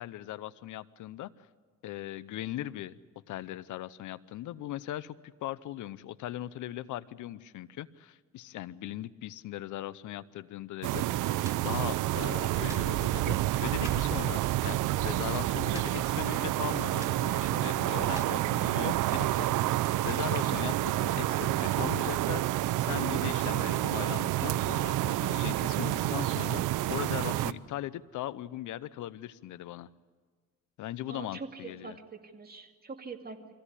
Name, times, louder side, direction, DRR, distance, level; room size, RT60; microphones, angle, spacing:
voice 1, 0.0-1.5 1.8-3.0 3.3-11.3 11.6-19.6 20.0-22.4 22.8-29.9 30.8-32.0, left 13 dB, 80° left, 18 dB, 0.7 m, -39 dB
sound 1, 10.8-27.5, right 15 dB, 85° right, 0.6 m, -29 dB
sound 2, 11.4-11.7 12.7-13.0 13.8-14.1 15.7-16.1 16.4-16.5 17.0-17.3 18.1-18.4, right 2 dB, 10° right, 1.8 m, -46 dB
voice 2, 31.1-33.5, right 4 dB, 30° right, 4 dB, 2.3 m, -44 dB
24.0 x 16.0 x 9.9 m, 1.5 s
cardioid pair, 90°, 30 cm